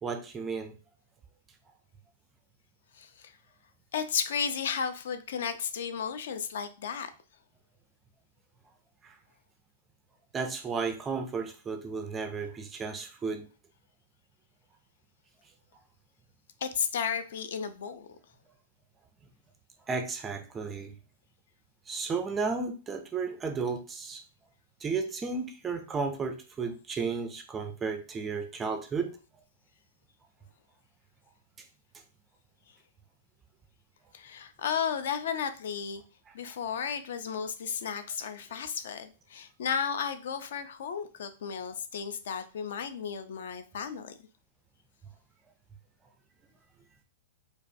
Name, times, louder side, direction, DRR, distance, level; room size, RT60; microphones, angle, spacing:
voice 1, 0.0-0.7 9.0-9.2 10.3-13.5 19.9-20.9 21.9-24.2 24.8-29.2, right 4 dB, 10° right, 5 dB, 0.3 m, -33 dB
voice 2, 3.0-3.3 3.9-7.1 16.6-18.1 34.1-36.0 36.3-44.1, left 7 dB, 65° left, 10 dB, 0.4 m, -33 dB
4.7 x 2.3 x 2.6 m, 0.35 s
supercardioid pair, 175°, 0 cm